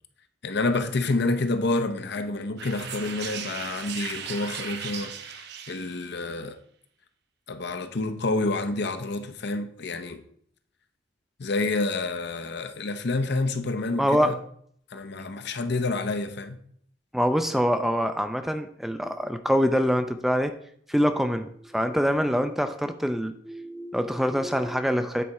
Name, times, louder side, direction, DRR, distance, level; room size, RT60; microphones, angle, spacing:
voice 1, 0.4-6.6 7.5-10.2 11.4-14.4 14.9-16.6, left 2 dB, 60° left, 0.7 m, -28 dB
sound 1, 2.6-6.2, right 7 dB, 60° right, 0.8 m, -37 dB
voice 2, 14.0-14.4 17.1-20.5 20.9-25.2, equal, ahead, 0.4 m, -25 dB
9.2 x 4.1 x 4.7 m
head